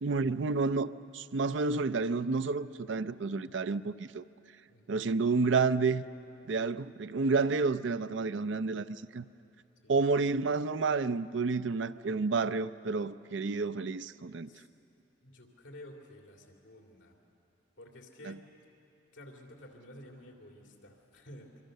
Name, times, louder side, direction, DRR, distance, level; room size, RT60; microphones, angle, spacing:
voice 1, 0.0-4.2 4.9-6.0 6.5-9.2 9.9-14.5 18.3-18.4, right 4 dB, 70° right, 0.5 m, -30 dB
voice 2, 4.7-5.0 9.8-10.0 14.5-14.7 15.2-17.2 17.8-18.4 19.1-21.6, left 1 dB, 75° left, 2.8 m, -51 dB
25.0 x 24.5 x 6.6 m
head